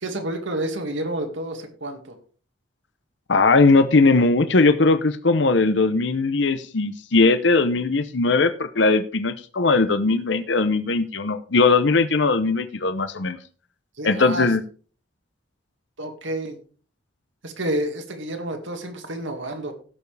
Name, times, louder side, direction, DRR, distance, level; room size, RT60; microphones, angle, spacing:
voice 1, 0.0-2.2 14.0-14.5 16.0-16.6 17.4-19.7, right 1 dB, 80° right, 5 dB, 2.2 m, -29 dB
voice 2, 3.3-13.4 14.0-14.6, left 3 dB, 65° left, 11 dB, 0.8 m, -19 dB
16.5 x 7.0 x 3.4 m, 0.40 s
head